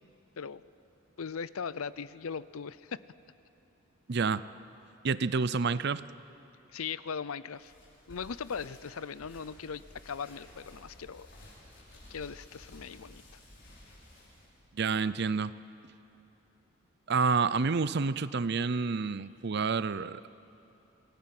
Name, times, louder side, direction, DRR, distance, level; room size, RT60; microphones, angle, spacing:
voice 1, 1.2-3.0 6.7-7.7 8.1-11.3 12.1-13.2, left 6 dB, 85° left, 17 dB, 0.6 m, -39 dB
voice 2, 4.1-4.5 5.0-6.0 14.7-15.5 17.1-20.3, right 4 dB, 50° right, 16 dB, 0.5 m, -29 dB
sound 1, 7.5-14.6, left 1 dB, 55° left, 6.6 m, -54 dB
27.0 x 19.5 x 7.8 m, 2.9 s
head